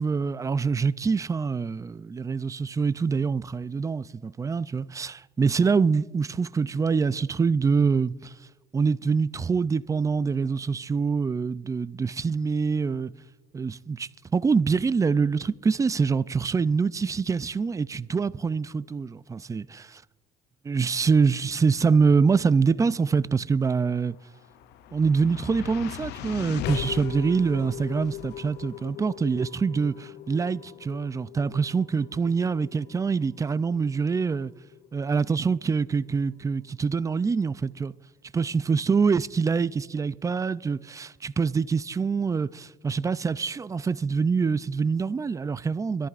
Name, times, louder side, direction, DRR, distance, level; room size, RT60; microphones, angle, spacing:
voice 1, 0.0-8.3 8.7-13.1 13.5-20.0 20.6-24.2 24.9-34.5 34.9-37.9 38.3-46.1, right 5 dB, 20° right, 0.3 m, -25 dB
sound 1, 24.1-36.4, left 12 dB, 80° left, 0.6 m, -40 dB
25.0 x 13.5 x 2.5 m
cardioid pair, 110°, 17 cm